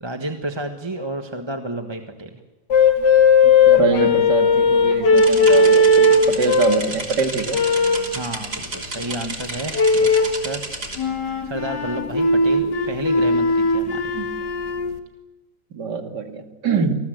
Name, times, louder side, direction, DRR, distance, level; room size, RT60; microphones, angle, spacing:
voice 1, 0.0-2.4 8.1-10.1 10.4-10.7 11.4-14.0, right 1 dB, 15° right, 6 dB, 1.4 m, -30 dB
sound 1, 2.7-6.9 7.5-8.1 9.7-10.4 11.0-14.9, left 3 dB, 85° left, 2.4 m, -17 dB
voice 2, 3.4-7.6 14.1-14.3 15.7-17.0, right 5 dB, 85° right, 6 dB, 2.8 m, -24 dB
sound 2, 5.2-11.0, right 2 dB, 70° right, 3.9 m, -32 dB
27.0 x 20.0 x 8.1 m, 1.1 s
omnidirectional pair, 1.8 m